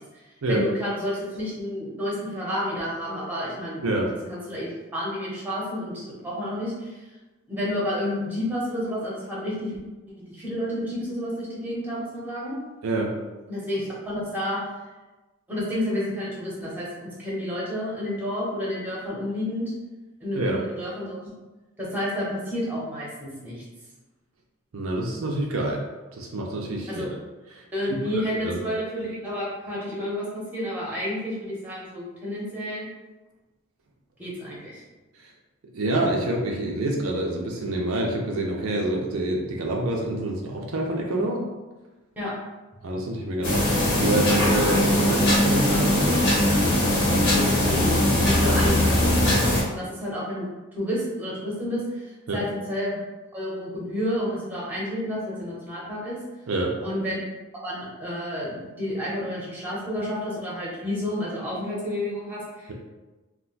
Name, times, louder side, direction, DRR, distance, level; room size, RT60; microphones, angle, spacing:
voice 1, 0.5-3.9 4.3-6.9 7.5-9.7 10.3-12.6 13.5-14.6 15.5-19.7 20.2-21.2 21.8-23.6 26.9-27.1 27.7-32.9 34.2-34.8 42.2-42.3 47.3-49.0 49.7-50.4 50.7-52.0 52.3-53.0 53.3-56.2 56.8-57.2 57.6-62.7, equal, 10° right, -6 dB, 0.9 m, -30 dB
voice 2, 24.7-25.8 26.1-27.1 27.5-27.6 28.4-28.6 35.7-41.4 42.8-46.2 48.5-48.8 52.3-52.4 56.5-56.7, right 1 dB, 75° right, -1 dB, 0.5 m, -27 dB
sound 1, 43.4-49.6, left 1 dB, 55° left, 1.0 m, -20 dB
2.5 x 2.2 x 3.9 m, 1.2 s
head